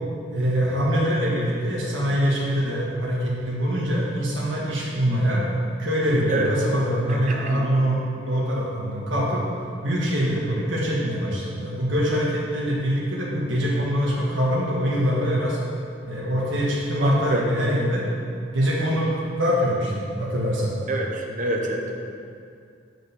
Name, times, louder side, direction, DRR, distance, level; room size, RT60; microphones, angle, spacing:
voice 1, 0.3-5.4 5.8-9.4 9.8-15.6 16.0-18.1 18.5-20.8, equal, 80° right, -5 dB, 1.4 m, -24 dB
voice 2, 7.4-7.7 17.0-17.4 20.9-21.9, right 2 dB, 40° right, 1 dB, 0.8 m, -27 dB
6.3 x 4.9 x 6.7 m, 2.3 s
head